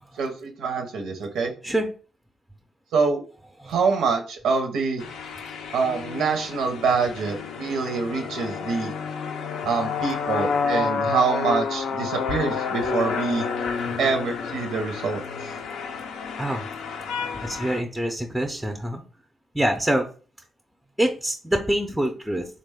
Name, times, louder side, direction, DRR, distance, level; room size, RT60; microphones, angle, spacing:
voice 1, 0.2-1.5 2.9-3.2 3.7-5.0 5.7-8.9 9.7-13.5 14.0-15.2, right 4 dB, 90° right, 4 dB, 0.6 m, -25 dB
sound 1, 5.0-17.8, left 5 dB, 90° left, 0.5 m, -30 dB
voice 2, 17.4-19.0 19.5-20.0 21.0-22.5, right 1 dB, ahead, 2 dB, 0.4 m, -25 dB
3.7 x 2.1 x 3.4 m, 0.38 s
cardioid pair, 105°, 0 cm